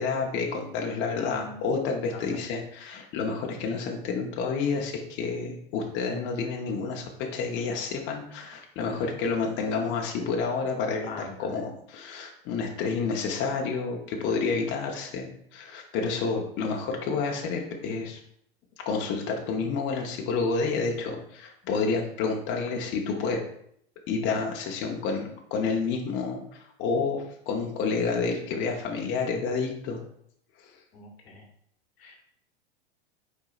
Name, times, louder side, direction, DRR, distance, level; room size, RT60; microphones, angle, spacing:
voice 1, 0.0-18.2 18.9-23.4 24.1-30.0, left 4 dB, 35° left, 1 dB, 0.9 m, -29 dB
voice 2, 1.1-1.6 2.1-2.4 8.9-9.2 11.0-11.5 30.9-31.4 32.0-32.2, left 2 dB, 70° left, 2 dB, 1.1 m, -42 dB
4.6 x 4.5 x 2.5 m, 0.68 s
hypercardioid pair, 100°, 31 cm